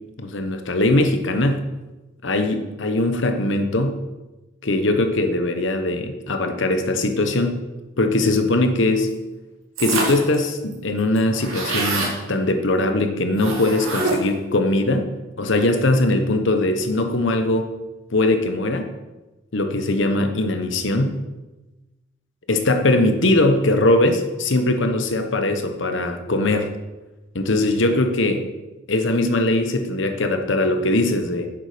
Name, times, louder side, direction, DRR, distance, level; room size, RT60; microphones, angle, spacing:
voice 1, 0.2-1.6 2.2-4.0 4.6-7.6 8.0-9.1 9.8-17.7 18.1-18.9 19.5-21.2 22.5-26.7 27.3-28.4 28.9-31.5, left 2 dB, 60° left, 7 dB, 1.0 m, -21 dB
sound 1, 9.8-10.3 10.7-10.8 11.0-12.2 13.4-14.4, right 3 dB, 85° right, 2.3 m, -25 dB
9.1 x 7.3 x 5.0 m, 1.1 s
head